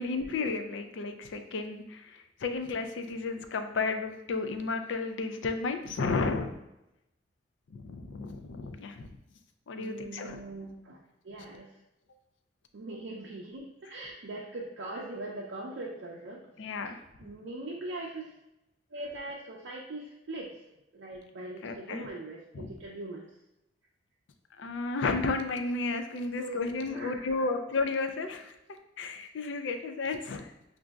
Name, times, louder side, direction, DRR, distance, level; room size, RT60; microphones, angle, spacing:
voice 1, 0.0-6.5 7.7-9.1 9.7-10.4 16.6-17.0 21.6-22.0 22.5-22.7 24.6-28.5 29.0-30.5, left 3 dB, 80° left, 7 dB, 0.4 m, -33 dB
voice 2, 9.7-11.8 12.7-16.4 17.2-18.3 18.9-20.5 20.9-23.3 26.4-27.5, right 2 dB, 75° right, -3 dB, 0.5 m, -41 dB
6.0 x 2.6 x 2.3 m, 0.89 s
head